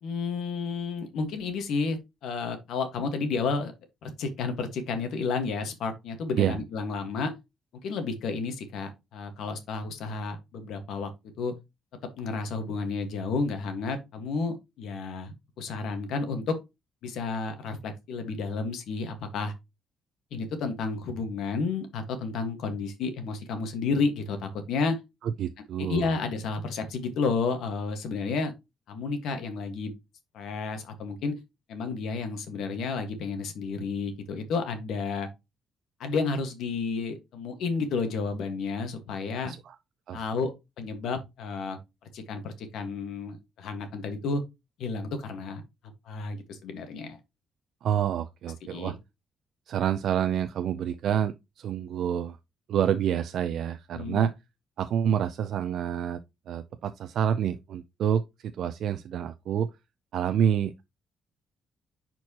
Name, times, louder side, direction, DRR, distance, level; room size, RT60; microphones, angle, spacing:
voice 1, 0.0-3.7 4.0-7.3 7.8-11.1 11.4-11.5 12.2-16.5 17.0-19.5 20.3-25.0 25.8-28.5 28.9-29.9 30.3-31.4 31.7-35.3 36.0-39.5 40.1-41.8 42.1-44.4 44.8-45.6 46.0-47.2 48.7-48.9 53.9-54.3, left 4 dB, 75° left, 1.5 m, -31 dB
voice 2, 25.4-26.1 39.4-39.7 40.1-40.2 47.8-49.0 49.7-52.4 52.7-54.3 54.8-56.2 56.5-59.7 60.1-60.8, right 9 dB, 60° right, 0.4 m, -28 dB
10.5 x 4.6 x 2.9 m
cardioid pair, 180°, 0 cm